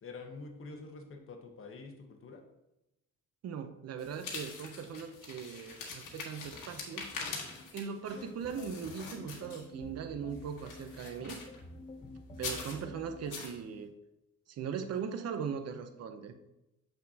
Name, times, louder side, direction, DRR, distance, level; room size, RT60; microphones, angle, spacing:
voice 1, 0.0-2.4, left 3 dB, 40° left, 3 dB, 1.0 m, -47 dB
voice 2, 3.4-7.1 7.7-11.4 12.3-13.9 14.5-16.3, right 6 dB, 50° right, 7 dB, 0.7 m, -39 dB
sound 1, 4.0-9.9 10.3-11.6 12.3-12.8 13.3-13.6, left 4 dB, 80° left, 1.6 m, -43 dB
sound 2, 8.1-13.3, left 1 dB, 20° left, 0.7 m, -50 dB
6.6 x 6.2 x 2.8 m, 0.92 s
cardioid pair, 150°, 31 cm